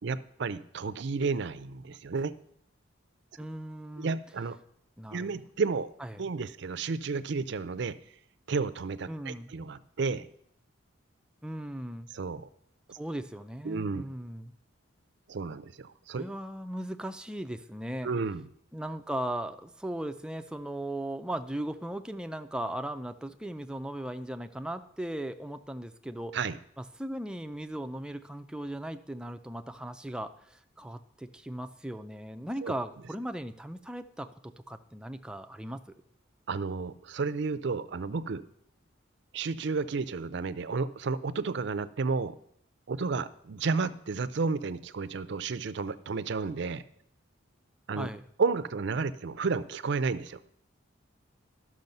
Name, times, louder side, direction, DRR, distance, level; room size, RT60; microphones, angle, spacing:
voice 1, 0.0-2.3 4.0-4.6 5.1-5.9 6.2-8.0 8.5-10.3 12.1-12.5 12.9-13.0 13.6-14.0 15.3-16.2 18.0-18.5 26.3-26.6 32.6-32.7 36.5-38.4 39.3-42.3 42.9-46.8 47.9-48.1 48.4-50.4, right 4 dB, 60° right, 13 dB, 0.5 m, -32 dB
voice 2, 3.4-4.1 5.0-5.4 6.0-6.2 9.1-9.5 11.4-12.1 13.0-14.5 16.2-18.1 18.7-26.4 26.8-35.8 48.0-48.2, right 1 dB, 5° right, 8 dB, 0.4 m, -37 dB
12.0 x 6.3 x 5.4 m, 0.71 s
head